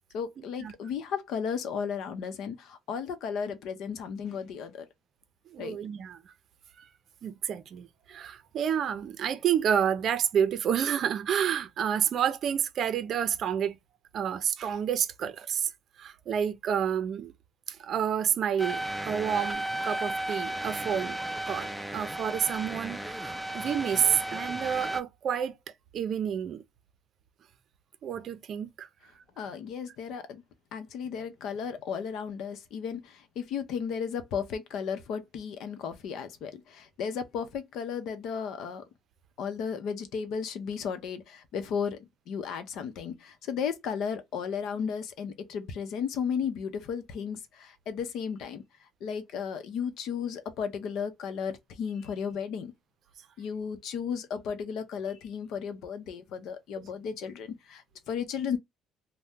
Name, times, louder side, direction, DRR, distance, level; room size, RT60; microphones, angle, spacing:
voice 1, 0.1-4.9 5.6-5.8 29.4-30.4 30.7-38.8 39.4-52.7 53.4-58.6, left 7 dB, 70° left, 0.7 m, -34 dB
voice 2, 5.5-6.2 7.2-13.8 14.1-15.7 16.0-17.3 17.7-21.2 21.5-25.5 25.9-26.6 28.0-28.9, right 8 dB, 50° right, 0.5 m, -29 dB
sound 1, 18.6-25.0, right 1 dB, ahead, 0.4 m, -34 dB
2.7 x 2.2 x 3.5 m
cardioid pair, 125°, 0 cm